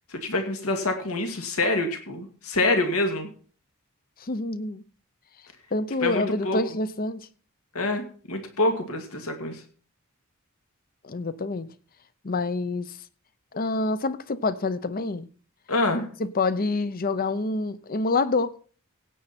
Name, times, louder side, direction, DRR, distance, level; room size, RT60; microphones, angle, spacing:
voice 1, 0.1-3.3 6.0-6.6 7.7-9.6 15.7-16.1, left 2 dB, 80° left, 2.2 m, -26 dB
voice 2, 4.2-4.8 5.7-7.3 11.0-11.7 12.2-13.0 13.5-15.3 16.2-18.5, left 3 dB, 40° left, 0.7 m, -27 dB
16.5 x 7.8 x 4.3 m
head